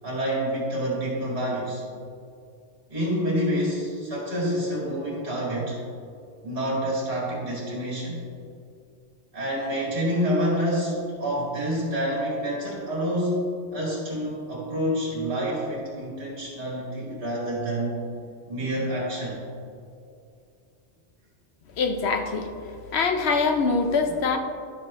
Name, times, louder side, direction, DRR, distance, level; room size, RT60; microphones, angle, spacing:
voice 1, 0.0-1.8 2.9-5.8 6.4-8.2 9.3-18.0 18.5-19.4, equal, 55° right, -6 dB, 2.4 m, -28 dB
voice 2, 21.8-22.6 22.9-24.4, left 4 dB, 70° left, 5 dB, 1.0 m, -23 dB
12.0 x 6.0 x 3.2 m, 2.4 s
omnidirectional pair, 1.2 m